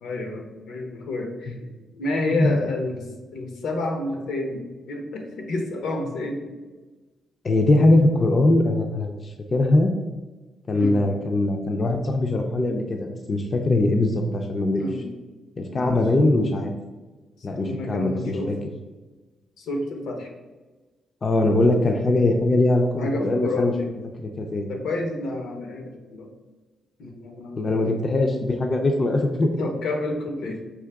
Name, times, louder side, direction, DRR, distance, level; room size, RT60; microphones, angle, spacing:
voice 1, 0.0-6.6 10.7-11.0 14.8-15.0 15.7-16.0 17.6-18.5 19.6-20.3 23.0-23.9 24.7-26.3 27.0-27.9 29.1-29.3 29.6-30.7, left 2 dB, 80° left, 3 dB, 0.7 m, -30 dB
voice 2, 7.4-9.9 10.7-14.8 15.6-16.7 17.4-18.6 21.2-23.7 24.2-24.7 27.6-29.5, left 2 dB, 30° left, 4 dB, 0.3 m, -21 dB
4.7 x 2.9 x 3.4 m, 1.2 s
wide cardioid pair, 165°, 0 cm